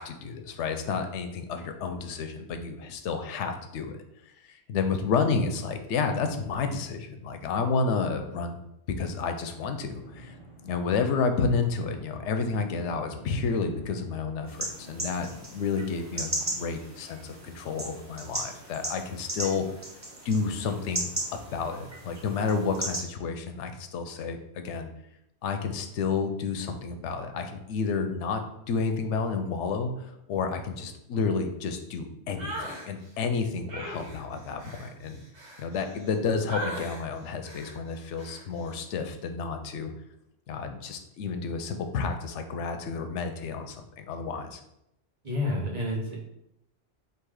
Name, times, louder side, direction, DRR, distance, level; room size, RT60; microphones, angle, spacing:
voice 1, 0.0-4.0 4.5-8.6 9.0-10.3 10.6-19.6 20.2-24.9 25.4-29.9 30.3-32.5 32.8-35.2 35.6-39.9 40.5-44.6, left 5 dB, 85° left, 7 dB, 0.9 m, -30 dB
sound 1, 9.9-15.4, right 1 dB, 30° left, 1.0 m, -50 dB
sound 2, 14.5-23.0, right 1 dB, 20° right, 0.6 m, -36 dB
sound 3, 32.4-32.9 33.7-36.1 36.5-37.0 37.4-37.8 38.2-38.4, right 1 dB, 80° right, 1.6 m, -38 dB
voice 2, 45.2-46.2, left 1 dB, 40° right, -2 dB, 1.0 m, -29 dB
3.7 x 2.7 x 4.7 m, 0.82 s
omnidirectional pair, 1.2 m